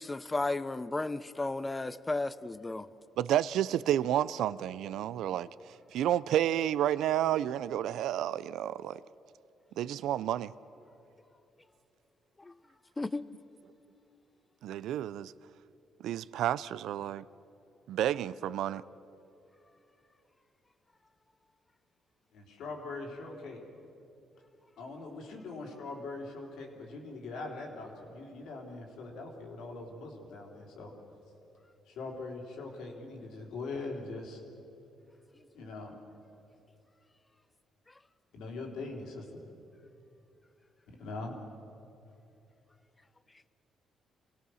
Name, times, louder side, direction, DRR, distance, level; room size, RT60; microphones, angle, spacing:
voice 1, 0.0-2.9 12.4-12.5 13.0-13.3, left 2 dB, 20° left, 0.7 m, -34 dB
voice 2, 3.2-5.5 5.9-9.0 9.8-10.5 14.6-15.3 16.0-17.2 17.9-18.8, right 11 dB, 80° right, 0.4 m, -30 dB
voice 3, 22.3-23.6 24.8-30.9 31.9-34.4 35.5-35.9 38.3-39.4 40.9-41.3, left 3 dB, 80° left, 3.5 m, -42 dB
26.5 x 17.5 x 6.4 m
cardioid pair, 90°, 0 cm